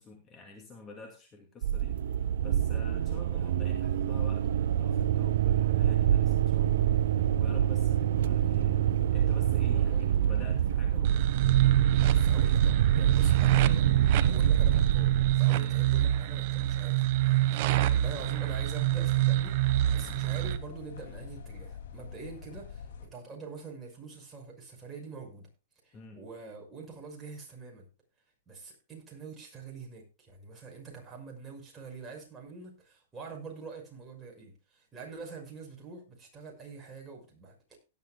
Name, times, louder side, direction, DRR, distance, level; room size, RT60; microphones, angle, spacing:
voice 1, 0.0-11.5 15.5-15.9 19.9-20.2 25.9-26.2, left 3 dB, 25° left, 2.4 m, -49 dB
sound 1, 1.6-15.4, right 10 dB, 75° right, 0.8 m, -26 dB
voice 2, 9.7-10.3 12.1-19.6 19.9-25.5 25.8-27.9 28.5-37.8, right 4 dB, 15° right, 5.8 m, -45 dB
sound 2, 11.0-20.6, right 14 dB, 45° right, 1.2 m, -27 dB
sound 3, 18.0-23.1, left 6 dB, 75° left, 2.6 m, -45 dB
17.5 x 11.5 x 2.3 m
hypercardioid pair, 145°, 0 cm